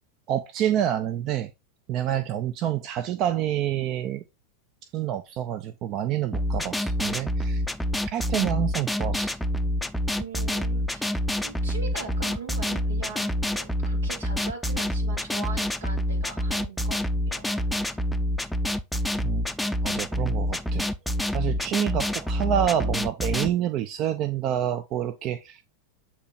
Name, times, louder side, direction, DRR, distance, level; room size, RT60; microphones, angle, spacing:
voice 1, 0.3-1.5 1.9-4.2 4.9-7.6 8.0-9.4 19.2-19.5 19.8-20.9 21.3-25.6, right 11 dB, 45° right, 0.5 m, -28 dB
sound 1, 6.3-23.5, left 1 dB, 5° left, 0.5 m, -27 dB
voice 2, 10.2-11.1 11.4-18.0 21.5-21.6, right 5 dB, 80° right, 1.7 m, -41 dB
8.2 x 3.0 x 4.1 m
hypercardioid pair, 95°, 0 cm